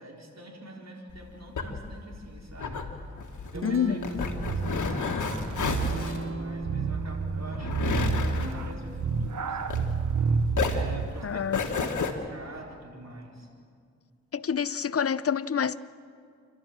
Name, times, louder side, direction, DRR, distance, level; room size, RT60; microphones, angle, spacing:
voice 1, 0.0-2.9 3.4-9.9 10.3-13.5, right 1 dB, 60° right, 4.4 m, -45 dB
sound 1, 1.1-10.2 10.5-12.1, left 4 dB, 85° left, 1.6 m, -32 dB
Guitar, 3.1-12.9, right 3 dB, 45° right, 1.5 m, -42 dB
voice 2, 3.6-4.3 11.2-11.6 14.3-15.8, left 7 dB, 50° left, 0.7 m, -28 dB
sound 2, 4.4-11.2, right 5 dB, 85° right, 1.0 m, -30 dB
28.5 x 12.5 x 7.5 m
cardioid pair, 45°, 30 cm